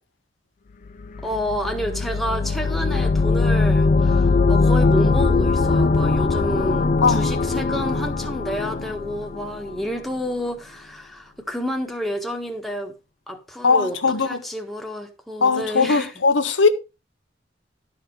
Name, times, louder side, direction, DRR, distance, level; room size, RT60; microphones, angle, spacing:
sound 1, 1.0-9.8, left 3 dB, 45° left, 0.5 m, -20 dB
voice 1, 1.2-12.9 13.3-16.1, equal, ahead, 1.5 m, -29 dB
voice 2, 13.6-14.4 15.4-16.7, left 4 dB, 80° left, 1.0 m, -19 dB
12.0 x 5.1 x 4.7 m
head